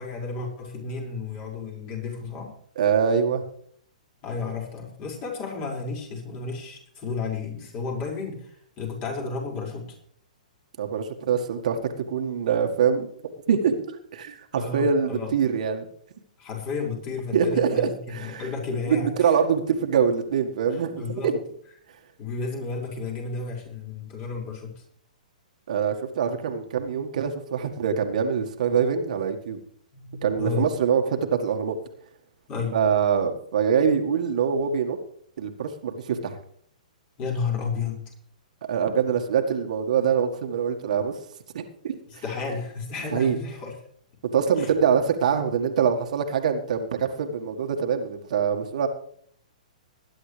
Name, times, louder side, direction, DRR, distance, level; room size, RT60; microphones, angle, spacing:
voice 1, 0.0-2.5 4.2-9.9 14.5-15.3 16.4-19.3 20.7-21.3 22.2-24.8 29.9-30.7 32.5-32.8 37.2-38.0 42.1-43.8 44.6-44.7, left 4 dB, 35° left, -1 dB, 5.6 m, -32 dB
voice 2, 2.8-3.4 10.8-11.8 12.1-13.1 13.5-15.9 17.3-18.5 18.9-21.4 25.7-29.6 30.2-31.8 32.7-35.0 35.4-36.3 38.6-41.1 41.5-42.0 43.1-43.4 44.3-48.9, right 7 dB, 65° right, 5 dB, 1.8 m, -24 dB
20.5 x 10.5 x 3.4 m, 0.62 s
hypercardioid pair, 125°, 4 cm